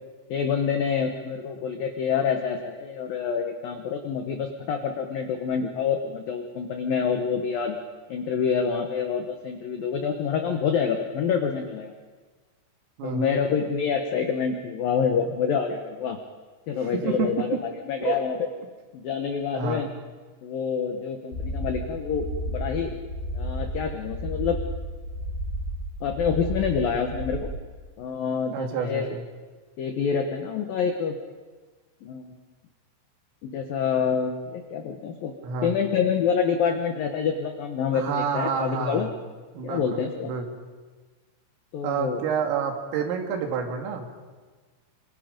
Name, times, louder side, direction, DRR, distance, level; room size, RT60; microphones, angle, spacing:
voice 1, 0.3-7.8 8.1-11.9 13.0-16.2 16.7-18.4 18.9-19.9 20.4-22.9 23.3-24.6 26.0-27.5 28.0-29.1 29.8-31.2 32.0-32.4 33.4-35.3 35.6-39.1 39.6-40.3 41.7-42.2, left 6 dB, 85° left, 5 dB, 2.0 m, -27 dB
voice 2, 13.0-13.4 16.9-17.3 18.0-18.2 19.5-19.8 28.5-29.2 35.4-35.7 37.9-39.1 39.5-39.9 40.2-40.5 41.8-44.1, right 6 dB, 75° right, 3 dB, 4.7 m, -28 dB
sound 1, 21.3-27.4, equal, 65° left, 6.5 m, -32 dB
28.0 x 26.5 x 5.2 m, 1.4 s
omnidirectional pair, 6.0 m